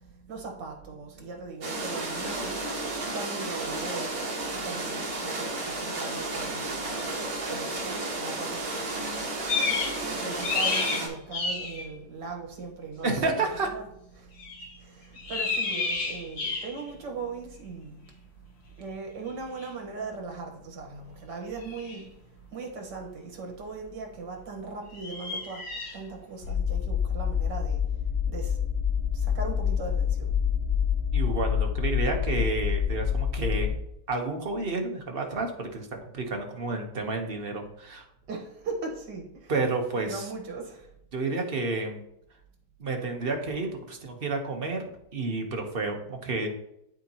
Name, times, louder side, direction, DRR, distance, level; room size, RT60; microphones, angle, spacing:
voice 1, 0.3-2.5 3.1-4.2 4.5-8.9 10.0-13.4 13.6-13.9 14.8-14.9 15.3-18.0 18.8-22.0 22.5-25.6 25.9-27.8 28.3-28.5 29.4-30.3 38.3-39.2 39.9-40.8, right 4 dB, 75° right, 2 dB, 2.1 m, -38 dB
sound 1, 1.6-11.1, right 2 dB, 55° right, 2.1 m, -32 dB
sound 2, 9.5-10.0 10.3-11.8 14.4-14.7 15.2-16.9 19.6-19.7 21.6-22.0 24.9-26.0, left 4 dB, 85° left, 2.1 m, -30 dB
voice 2, 13.0-13.7 31.1-33.7 34.1-35.9 36.1-38.0 39.5-40.2 41.1-42.0 42.8-44.8 45.1-46.5, right 3 dB, 40° right, 3 dB, 1.1 m, -30 dB
sound 3, 26.4-33.7, left 8 dB, 55° left, 1.1 m, -27 dB
12.0 x 4.3 x 2.9 m, 0.77 s
omnidirectional pair, 1.9 m